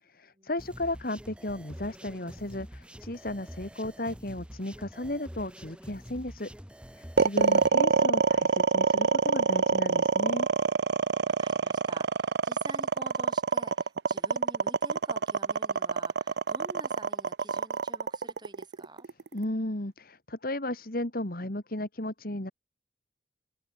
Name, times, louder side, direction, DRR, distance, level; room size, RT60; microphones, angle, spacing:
voice 1, 0.0-6.5 6.9-10.5 19.3-22.5, left 1 dB, 50° left, 2.6 m, -34 dB
sound 1, 0.6-7.7, equal, 5° right, 1.8 m, -46 dB
sound 2, 7.2-19.4, right 5 dB, 65° right, 0.6 m, -25 dB
voice 2, 11.3-19.1, right 2 dB, 25° right, 7.0 m, -48 dB
open air
head